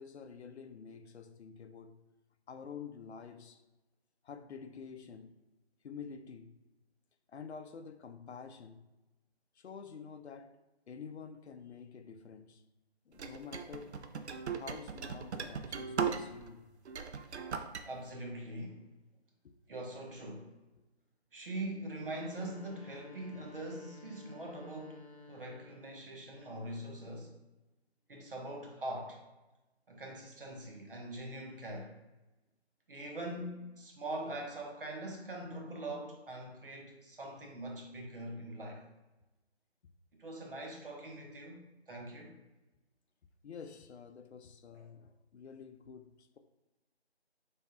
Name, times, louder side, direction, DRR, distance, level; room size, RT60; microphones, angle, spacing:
voice 1, 0.0-2.0 2.5-3.6 4.2-5.4 5.8-6.6 7.3-8.8 9.6-10.6 10.9-12.6 13.1-14.2 14.5-16.6 19.4-19.6 43.4-46.4, left 6 dB, 85° left, 0.5 m, -48 dB
sound 1, 13.2-16.5 16.9-17.8, right 6 dB, 85° right, 0.5 m, -38 dB
voice 2, 17.8-18.8 19.7-20.5 21.3-25.0 25.3-27.4 28.1-29.2 29.9-31.9 32.9-38.8 40.2-41.6 41.9-42.4, right 1 dB, 55° right, 0.8 m, -42 dB
sound 2, 22.1-26.1, left 3 dB, 35° right, 0.5 m, -54 dB
3.4 x 2.2 x 4.2 m
figure-of-eight pair, 175°, 32 cm